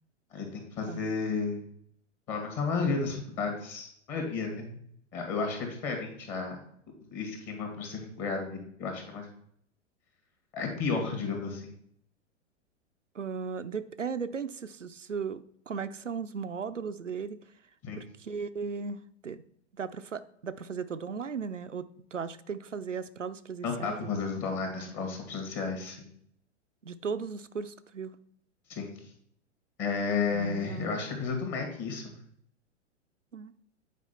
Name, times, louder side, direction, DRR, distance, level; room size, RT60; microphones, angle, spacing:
voice 1, 0.3-1.6 2.3-4.8 5.1-6.6 7.1-9.3 10.5-11.7 17.8-18.0 23.6-26.1 28.7-28.9 29.8-32.1, left 4 dB, 30° left, 3 dB, 2.1 m, -32 dB
voice 2, 13.1-17.4 17.9-19.4 19.7-24.2 26.8-28.2 30.3-31.0 33.3-33.5, right 5 dB, 90° right, 10 dB, 0.5 m, -37 dB
8.3 x 4.7 x 4.3 m, 0.68 s
figure-of-eight pair, 100°, 36 cm